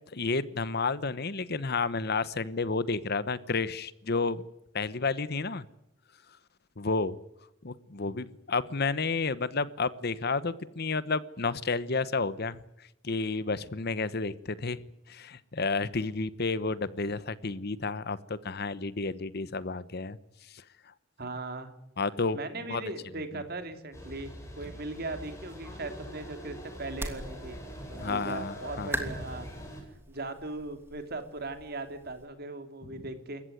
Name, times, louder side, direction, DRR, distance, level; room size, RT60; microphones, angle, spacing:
voice 1, 0.1-4.4 4.7-5.6 6.8-7.2 7.6-12.6 13.0-14.8 15.1-20.2 20.5-20.6 22.0-22.4 22.7-22.8 28.0-28.9, left 4 dB, 55° left, 16 dB, 1.0 m, -31 dB
voice 2, 21.2-21.7 22.3-27.6 27.9-29.5 30.1-33.4, right 2 dB, 55° right, 8 dB, 3.0 m, -39 dB
sound 1, 23.9-29.8, equal, 15° left, 7.1 m, -42 dB
sound 2, 26.6-32.3, right 1 dB, 10° right, 3.0 m, -42 dB
28.0 x 15.0 x 9.4 m, 0.85 s
head